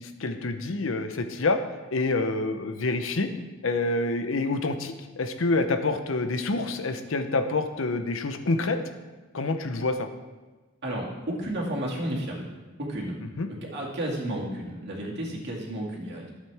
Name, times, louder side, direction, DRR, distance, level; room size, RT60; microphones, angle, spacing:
voice 1, 0.0-1.6 1.9-3.3 3.6-8.8 9.3-10.1 13.2-13.5, left 3 dB, 70° left, 8 dB, 0.7 m, -27 dB
voice 2, 10.8-12.5 12.8-13.2 13.7-16.3, right 1 dB, 55° right, -3 dB, 2.1 m, -32 dB
12.5 x 7.4 x 3.4 m, 1.3 s
head